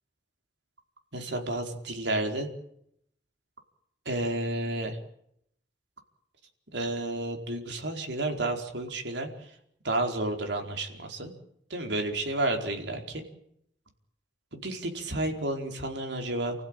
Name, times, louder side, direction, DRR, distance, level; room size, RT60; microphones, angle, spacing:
voice 1, 1.1-2.5 4.0-5.0 6.7-9.3 9.8-11.3 11.7-13.2 14.5-16.5, right 2 dB, 75° right, 3 dB, 4.7 m, -31 dB
30.0 x 15.5 x 9.1 m, 0.73 s
head